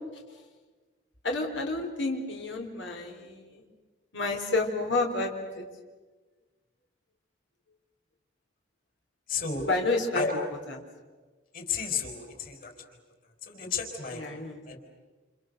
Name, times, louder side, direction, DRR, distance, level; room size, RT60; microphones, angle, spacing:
voice 1, 1.2-3.6 4.1-5.7 9.6-10.4 10.7-10.8 14.1-14.6, left 2 dB, 90° left, 1 dB, 4.1 m, -30 dB
voice 2, 9.3-9.7 10.1-10.4 11.5-12.7 13.5-14.2 14.7-14.8, left 5 dB, 45° left, 4 dB, 4.8 m, -32 dB
30.0 x 29.5 x 6.8 m, 1.3 s
head